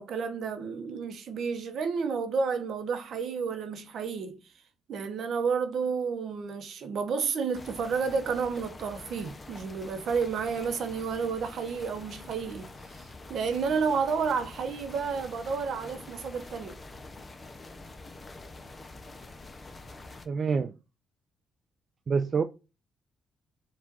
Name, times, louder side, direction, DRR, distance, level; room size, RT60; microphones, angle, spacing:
voice 1, 0.0-4.4 4.9-16.8, right 5 dB, 65° right, 0.8 m, -31 dB
sound 1, 7.5-20.3, left 2 dB, 30° left, 0.6 m, -46 dB
voice 2, 20.3-20.7 22.1-22.4, right 5 dB, 45° right, 0.4 m, -26 dB
4.8 x 2.4 x 3.9 m
cardioid pair, 90°, 0 cm